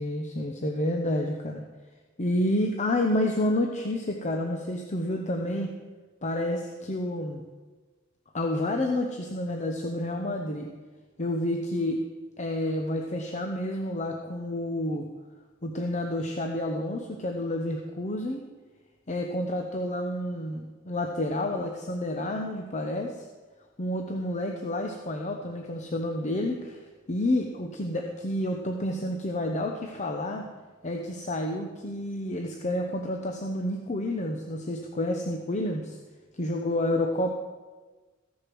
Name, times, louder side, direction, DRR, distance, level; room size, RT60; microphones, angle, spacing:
voice 1, 0.0-1.6 2.2-5.7 6.2-7.4 8.3-10.7 11.2-12.1 12.4-15.0 15.6-18.4 19.1-23.2 23.8-26.8 27.1-30.5 30.8-36.0 36.4-37.3, left 1 dB, 35° left, 2 dB, 0.8 m, -29 dB
14.5 x 6.7 x 6.1 m, 1.3 s
head